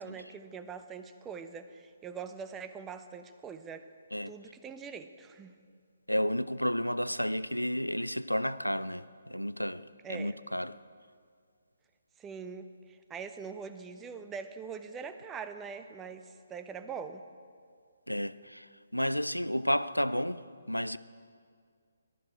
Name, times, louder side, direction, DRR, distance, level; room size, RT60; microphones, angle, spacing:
voice 1, 0.0-3.9 4.3-5.5 10.0-10.4 12.2-17.2, right 6 dB, 10° right, 0.7 m, -43 dB
voice 2, 6.1-10.7 18.1-18.7 18.9-20.4 20.7-21.0, equal, 90° left, 0.5 m, -31 dB
19.5 x 12.5 x 4.9 m
figure-of-eight pair, 140°, 0 cm